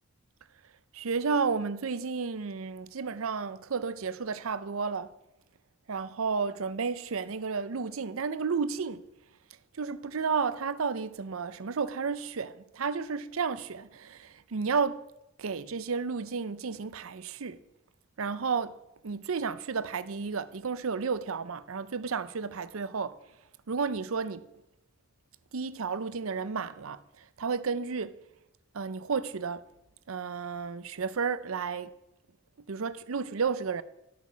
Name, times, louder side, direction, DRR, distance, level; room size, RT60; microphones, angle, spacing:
voice 1, 0.9-5.1 5.9-9.0 9.8-15.0 15.4-17.6 18.2-18.7 19.0-23.2 23.7-24.5 25.5-28.2 28.7-29.6 30.1-31.9 32.7-33.8, right 5 dB, 80° right, 0.6 m, -32 dB
12.0 x 8.4 x 6.2 m
head